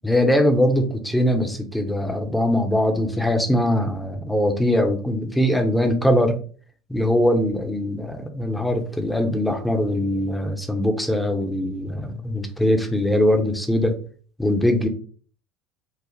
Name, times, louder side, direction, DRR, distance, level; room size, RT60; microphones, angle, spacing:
voice 1, 0.0-6.4 6.9-13.9 14.4-14.9, left 1 dB, 5° left, 4 dB, 1.0 m, -21 dB
6.4 x 2.4 x 3.3 m, 0.44 s
hypercardioid pair, 70°, 0 cm